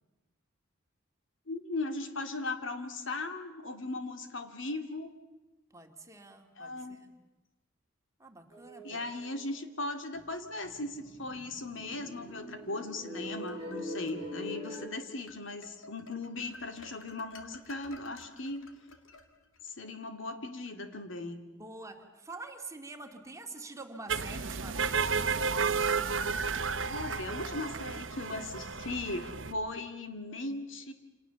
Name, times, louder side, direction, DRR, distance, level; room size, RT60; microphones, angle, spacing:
voice 1, 1.5-5.1 6.6-7.0 8.8-18.7 19.6-21.4 26.9-30.9, left 2 dB, 70° left, 7 dB, 2.2 m, -38 dB
voice 2, 5.7-7.1 8.2-9.1 21.5-25.4, right 3 dB, 15° right, 4 dB, 2.2 m, -46 dB
sound 1, 8.5-9.6 9.9-10.0 10.2-10.3 10.6-14.9, left 1 dB, 30° left, 7.8 m, -43 dB
sound 2, 12.9-14.2 14.7-14.9 15.3-19.7, left 3 dB, 85° left, 2.2 m, -53 dB
sound 3, 24.1-29.5, right 5 dB, 70° right, 1.1 m, -32 dB
28.5 x 28.0 x 7.0 m, 1.1 s
head